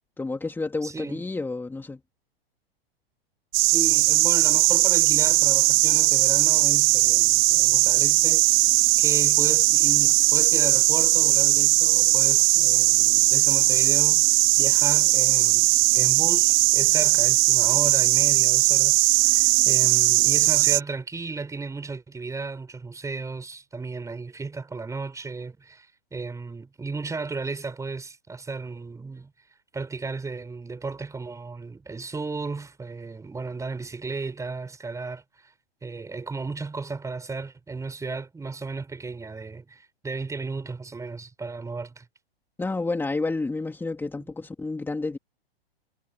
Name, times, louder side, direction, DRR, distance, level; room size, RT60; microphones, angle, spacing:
voice 1, 0.2-2.0 42.6-45.2, left 3 dB, 5° left, 2.7 m, -30 dB
voice 2, 0.8-1.2 3.6-29.3 29.7-35.5 35.8-42.1, right 4 dB, 10° right, 5.1 m, -35 dB
sound 1, 3.5-20.8, right 25 dB, 45° right, 2.3 m, -19 dB
hypercardioid pair, 120°, 31 cm